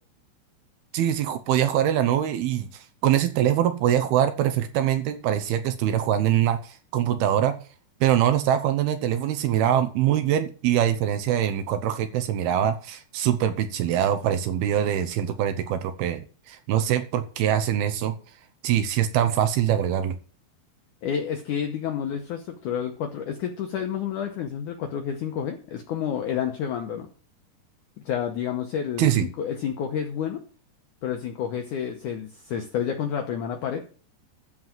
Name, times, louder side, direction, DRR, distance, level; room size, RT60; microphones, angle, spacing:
voice 1, 0.9-7.6 8.0-18.1 18.6-20.2 29.0-29.3, right 10 dB, 75° right, 8 dB, 2.6 m, -23 dB
voice 2, 21.0-27.1 28.1-30.4 31.0-33.8, left 8 dB, 80° left, 5 dB, 1.8 m, -29 dB
13.5 x 4.8 x 7.5 m, 0.39 s
omnidirectional pair, 4.9 m